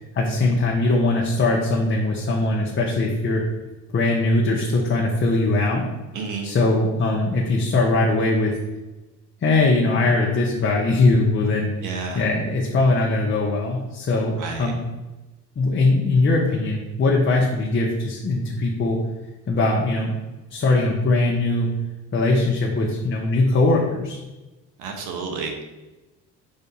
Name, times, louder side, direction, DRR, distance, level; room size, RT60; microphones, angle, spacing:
voice 1, 0.1-3.4 3.9-5.9 6.4-8.6 9.4-14.8 15.6-19.0 19.5-20.1 20.5-21.7 22.1-24.2, left 2 dB, 40° left, -2 dB, 1.2 m, -21 dB
voice 2, 6.1-6.5 11.8-12.3 14.4-14.7 24.8-25.6, right 4 dB, 80° right, 3 dB, 1.5 m, -30 dB
5.5 x 4.1 x 5.5 m, 1.1 s
cardioid pair, 100°, 31 cm